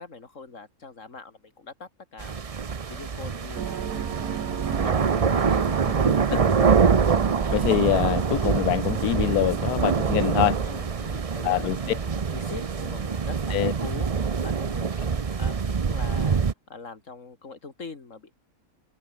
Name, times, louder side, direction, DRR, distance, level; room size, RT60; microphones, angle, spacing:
voice 1, 0.0-2.5 2.9-3.9 4.8-6.7 10.6-18.3, left 4 dB, 55° left, 3.0 m, -42 dB
sound 1, 2.2-16.5, right 5 dB, 35° right, 0.6 m, -25 dB
sound 2, 3.6-10.9, right 10 dB, 90° right, 1.5 m, -35 dB
voice 2, 7.5-10.6 11.4-11.8 13.5-13.7, left 14 dB, 85° left, 1.2 m, -24 dB
omnidirectional pair, 1.6 m